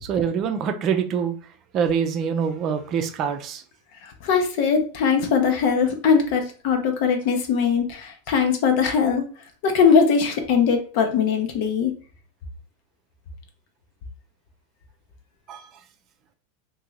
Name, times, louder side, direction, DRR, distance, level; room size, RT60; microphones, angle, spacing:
voice 1, 0.0-1.4 1.7-3.6 15.5-15.7, right 7 dB, 45° right, 7 dB, 0.5 m, -25 dB
voice 2, 4.0-9.3 9.6-11.9, left 6 dB, 60° left, 5 dB, 0.8 m, -21 dB
2.9 x 2.7 x 3.9 m, 0.39 s
hypercardioid pair, 100°, 0 cm